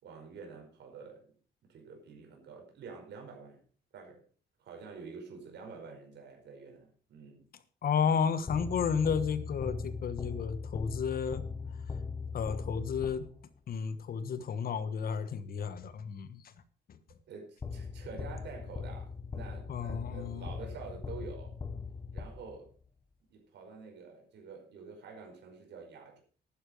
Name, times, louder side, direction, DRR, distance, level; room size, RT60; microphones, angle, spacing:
voice 1, 0.0-1.2 1.6-3.6 3.9-4.2 4.6-7.5 17.3-21.6 22.1-22.7 23.3-26.2, right 5 dB, 70° right, 2 dB, 5.1 m, -48 dB
voice 2, 7.8-11.4 12.3-13.2 13.7-16.4 19.7-20.5, left 6 dB, 50° left, 14 dB, 1.2 m, -32 dB
sound 1, 8.5-13.6 17.6-22.8, left 4 dB, 25° left, 0.9 m, -40 dB
12.0 x 9.9 x 5.3 m, 0.42 s
cardioid pair, 120°, 19 cm